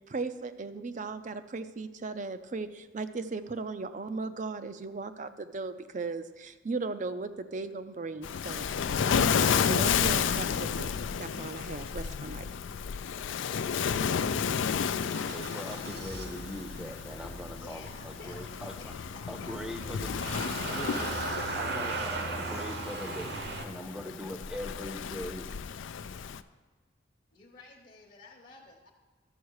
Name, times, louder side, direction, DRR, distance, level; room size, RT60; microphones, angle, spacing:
voice 1, 0.1-10.9 11.2-12.5, right 3 dB, 40° right, 11 dB, 0.5 m, -37 dB
Waves surf, 8.2-26.4, left 7 dB, 70° left, 0.4 m, -32 dB
Motor vehicle (road) / Engine starting, 15.1-23.6, right 3 dB, 55° right, 1.0 m, -38 dB
voice 2, 15.3-18.9 19.3-20.2 20.7-21.2 21.5-23.3 23.6-25.5, equal, 5° right, 5 dB, 0.7 m, -41 dB
voice 3, 17.6-20.9 27.3-28.9, left 3 dB, 40° left, -1 dB, 1.0 m, -52 dB
12.5 x 7.2 x 4.7 m, 1.3 s
head